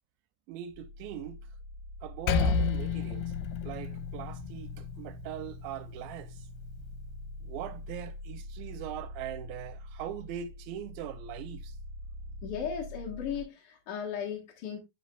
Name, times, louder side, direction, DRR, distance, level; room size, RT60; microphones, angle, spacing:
voice 1, 0.5-1.4 2.0-6.5 7.4-11.8, right 11 dB, 80° right, 2.3 m, -41 dB
sound 1, 0.7-13.4, left 1 dB, 10° right, 2.8 m, -45 dB
Percussion, 2.3-7.1, left 5 dB, 90° left, 2.6 m, -32 dB
voice 2, 12.4-14.8, left 7 dB, 65° left, 1.4 m, -36 dB
11.0 x 4.7 x 2.3 m
omnidirectional pair, 4.5 m